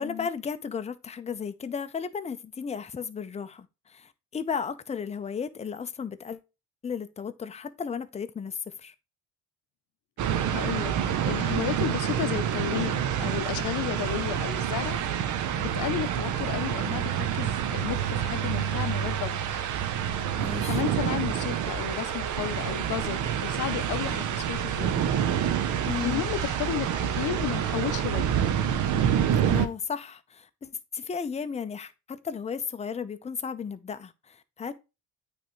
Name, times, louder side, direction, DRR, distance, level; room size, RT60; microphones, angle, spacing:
voice 1, 0.0-6.4 6.8-8.9 20.4-20.8 25.8-26.3 29.5-34.7, left 6 dB, 20° left, 0.5 m, -34 dB
sound 1, 10.2-29.7, right 9 dB, 75° right, 0.7 m, -27 dB
voice 2, 10.5-15.0 15.6-19.6 20.7-25.1 26.0-28.2, left 13 dB, 85° left, 0.6 m, -33 dB
9.1 x 3.4 x 3.0 m
cardioid pair, 90°, 30 cm